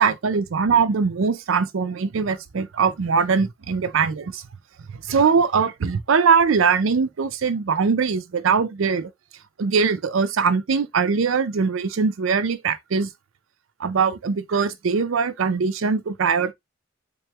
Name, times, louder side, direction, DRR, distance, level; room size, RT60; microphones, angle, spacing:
voice 1, 0.0-4.4 4.9-9.1 9.6-13.1 13.8-16.5, right 5 dB, 80° right, 0.5 m, -21 dB
3.7 x 2.9 x 3.4 m
head